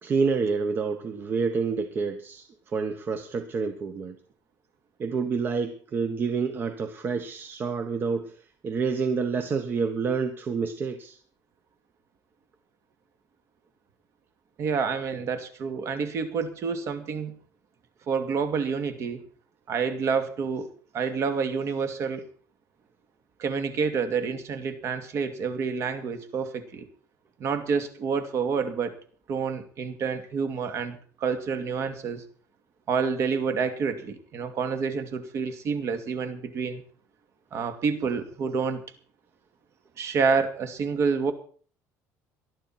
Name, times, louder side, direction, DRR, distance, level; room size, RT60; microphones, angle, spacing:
voice 1, 0.0-4.2 5.0-11.2, right 5 dB, 35° right, 9 dB, 1.2 m, -28 dB
voice 2, 14.6-17.3 18.1-19.2 19.7-20.7 20.9-22.2 23.4-26.9 27.4-29.0 29.3-32.2 32.9-36.8 37.5-38.8 40.0-41.3, right 5 dB, 50° right, 9 dB, 2.4 m, -28 dB
20.0 x 12.0 x 4.4 m, 0.43 s
cardioid pair, 135°, 6 cm